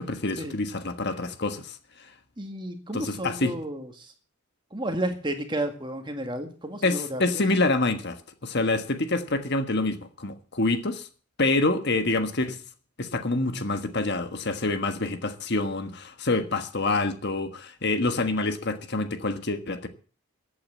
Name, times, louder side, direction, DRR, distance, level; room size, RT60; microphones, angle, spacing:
voice 1, 0.0-1.8 2.9-3.5 6.8-11.1 11.4-12.6 13.0-19.9, left 2 dB, 50° left, 9 dB, 1.4 m, -27 dB
voice 2, 2.4-4.1 4.7-7.2, right 1 dB, 20° right, 6 dB, 1.9 m, -32 dB
15.0 x 8.8 x 7.4 m, 0.40 s
head